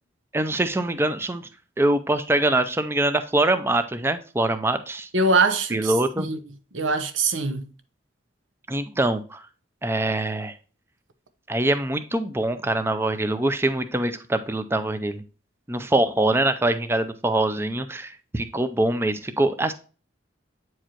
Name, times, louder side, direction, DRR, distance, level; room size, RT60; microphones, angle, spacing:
voice 1, 0.3-1.4 1.8-5.1 5.7-6.3 8.7-9.4 9.8-10.6 11.5-15.2 15.7-19.7, right 2 dB, 10° right, 0.5 m, -24 dB
voice 2, 5.1-6.4 6.7-7.6, right 3 dB, 80° right, 0.9 m, -23 dB
8.8 x 4.7 x 2.9 m
head